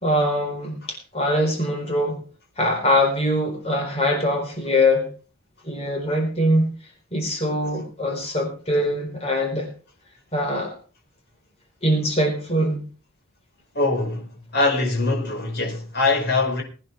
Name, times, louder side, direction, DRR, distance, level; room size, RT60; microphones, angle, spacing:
voice 1, 0.0-2.2 2.6-5.1 5.6-6.7 7.1-9.7 10.3-10.7 11.8-12.8, left 1 dB, 30° left, 4.4 m, -22 dB
voice 2, 13.7-14.3 14.5-16.6, left 3 dB, 50° left, 5.7 m, -22 dB
22.0 x 9.8 x 3.6 m
head